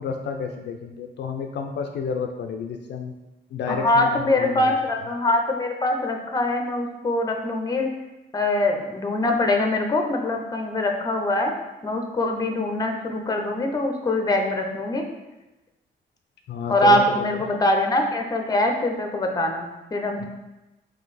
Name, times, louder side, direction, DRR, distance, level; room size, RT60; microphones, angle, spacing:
voice 1, 0.0-3.1 3.5-4.8 16.5-17.4 20.2-20.3, left 6 dB, 60° left, 4 dB, 0.4 m, -30 dB
voice 2, 3.7-7.9 8.3-11.5 11.8-15.0 16.7-20.3, left 1 dB, 20° left, 4 dB, 0.6 m, -23 dB
3.8 x 2.7 x 4.1 m, 1.0 s
cardioid pair, 90°, 20 cm